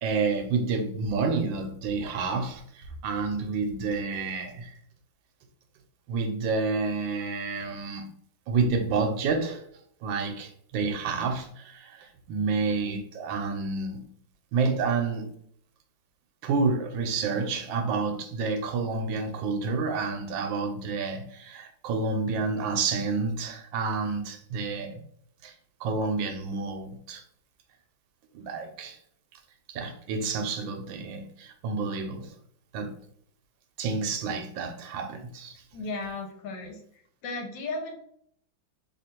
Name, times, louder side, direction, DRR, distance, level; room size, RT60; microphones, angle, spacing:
voice 1, 0.0-4.7 6.1-8.1 8.5-9.6 10.0-14.1 14.5-15.3 16.4-25.0 25.4-25.5 25.8-27.2 28.3-29.0 29.7-32.3 32.7-33.0 33.8-35.6, right 4 dB, 85° right, 1.4 m, -29 dB
voice 2, 35.7-36.8 37.2-37.9, left 3 dB, 75° left, 1.5 m, -35 dB
3.3 x 2.5 x 4.3 m
omnidirectional pair, 2.1 m